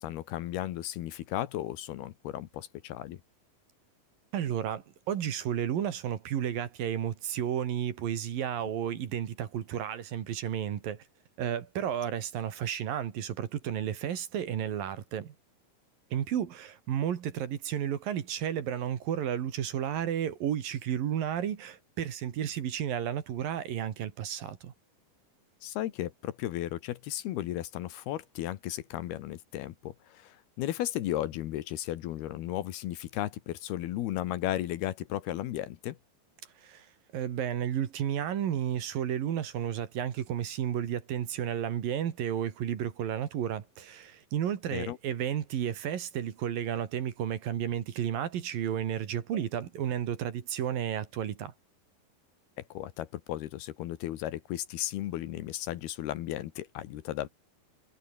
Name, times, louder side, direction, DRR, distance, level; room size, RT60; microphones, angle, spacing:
voice 1, 0.0-3.2 25.6-36.0 44.7-45.0 52.7-57.3, left 13 dB, 70° left, 2.9 m, -35 dB
voice 2, 4.3-11.0 11.4-15.3 16.1-24.7 36.6-36.9 37.1-51.5, right 9 dB, 60° right, 3.3 m, -32 dB
omnidirectional pair, 5.2 m